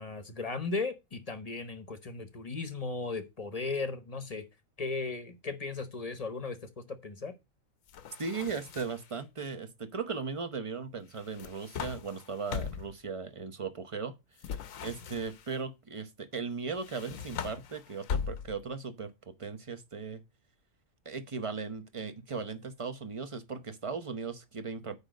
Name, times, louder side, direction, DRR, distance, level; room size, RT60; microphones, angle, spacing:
voice 1, 0.0-4.5 4.8-7.3, left 3 dB, 30° left, 0.9 m, -36 dB
sound 1, 7.9-9.2 11.1-13.0 14.4-15.6 16.8-18.7, left 7 dB, 75° left, 1.1 m, -39 dB
voice 2, 8.2-14.1 14.5-14.6 14.8-20.2 21.0-25.0, right 5 dB, 30° right, 0.7 m, -37 dB
8.3 x 5.1 x 5.0 m
omnidirectional pair, 1.4 m